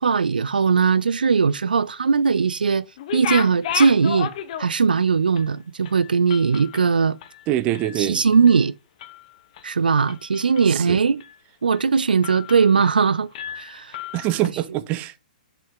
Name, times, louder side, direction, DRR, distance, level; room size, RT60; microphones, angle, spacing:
voice 1, 0.0-2.8 3.1-4.3 4.6-7.2 8.0-8.7 9.6-11.2 11.6-13.3 13.6-14.0, right 5 dB, 85° right, 0.3 m, -19 dB
sound 1, 3.0-5.0 5.4-5.5 5.8-8.0 8.3-8.6 9.0-9.6 10.1-10.8 11.2-11.3 11.7-11.9 12.2-13.1 13.3-14.5, left 10 dB, 50° left, 1.1 m, -33 dB
voice 2, 7.5-8.2 10.7-11.0 14.1-15.2, right 14 dB, 30° right, 0.7 m, -24 dB
7.0 x 5.7 x 3.7 m
hypercardioid pair, 125°, 5 cm